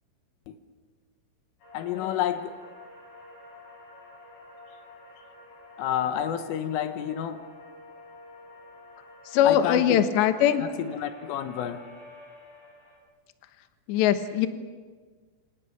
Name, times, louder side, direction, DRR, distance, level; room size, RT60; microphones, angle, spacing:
sound 1, 1.6-13.0, left 2 dB, 45° left, 8.4 m, -49 dB
voice 1, 1.7-2.6 5.8-7.4 9.5-9.8 10.9-11.8, left 10 dB, 90° left, 8 dB, 3.9 m, -29 dB
voice 2, 9.3-10.6 13.9-14.5, left 10 dB, 70° left, 9 dB, 3.3 m, -21 dB
28.5 x 27.0 x 7.4 m, 1.5 s
omnidirectional pair, 5.7 m